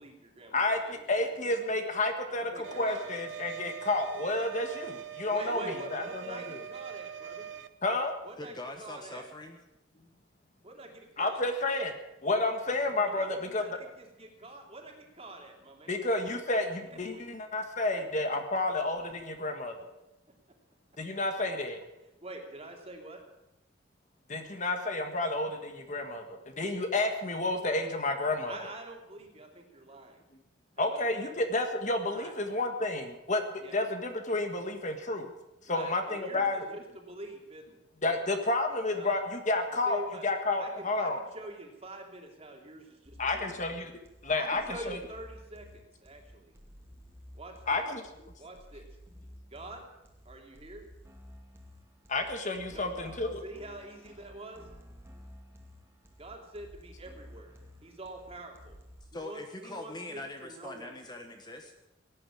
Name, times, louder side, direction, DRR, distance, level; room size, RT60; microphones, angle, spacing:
voice 1, 0.0-1.3 2.2-3.1 5.3-7.5 8.2-8.5 8.8-9.3 10.6-11.5 13.0-16.0 16.9-17.3 22.2-23.2 28.5-30.2 30.8-31.3 32.1-32.3 33.6-33.8 35.7-37.8 38.9-39.2 39.8-40.2 40.6-43.6 44.4-46.5 47.3-47.8 48.4-48.9 49.5-49.8 50.2-50.9 52.7-54.6 56.2-57.6 57.8-58.8 59.1-60.9, right 2 dB, 35° right, 2 dB, 2.9 m, -46 dB
voice 2, 0.5-6.6 7.8-8.1 11.2-11.9 12.2-13.6 15.9-19.7 21.0-21.8 24.3-28.6 30.8-33.4 33.7-35.3 35.7-36.7 38.0-41.2 43.2-43.9 44.2-45.0 47.7-48.0 52.1-53.4, left 2 dB, 40° left, 6 dB, 1.7 m, -30 dB
sound 1, 2.6-7.7, right 8 dB, 80° right, 0.9 m, -42 dB
voice 3, 8.4-9.6 59.0-61.9, left 1 dB, 25° left, 4 dB, 1.3 m, -42 dB
sound 2, 43.0-59.0, equal, 15° right, 2.4 m, -52 dB
17.0 x 9.6 x 8.6 m, 0.96 s
head